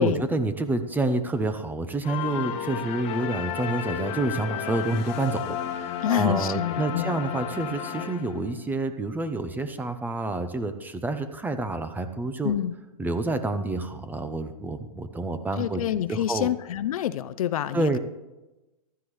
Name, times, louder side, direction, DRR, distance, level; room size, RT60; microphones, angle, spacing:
voice 1, 0.0-12.5 13.0-15.8 16.1-16.5 17.7-18.0, right 2 dB, 10° right, 10 dB, 0.7 m, -28 dB
sound 1, 2.0-8.6, left 9 dB, 30° left, 1.3 m, -33 dB
voice 2, 6.0-7.2 12.4-12.7 15.6-18.0, left 11 dB, 65° left, 15 dB, 0.6 m, -27 dB
15.0 x 12.0 x 3.2 m, 1.0 s
hypercardioid pair, 125°, 19 cm